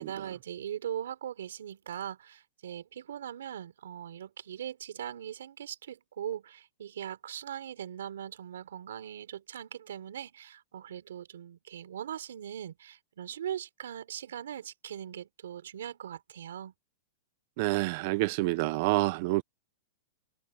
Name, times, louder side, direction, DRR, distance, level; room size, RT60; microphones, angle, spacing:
voice 1, 0.0-16.7, right 10 dB, 85° right, 3.6 m, -40 dB
voice 2, 17.6-19.4, right 22 dB, 35° right, 0.5 m, -28 dB
supercardioid pair, 170°, 0 cm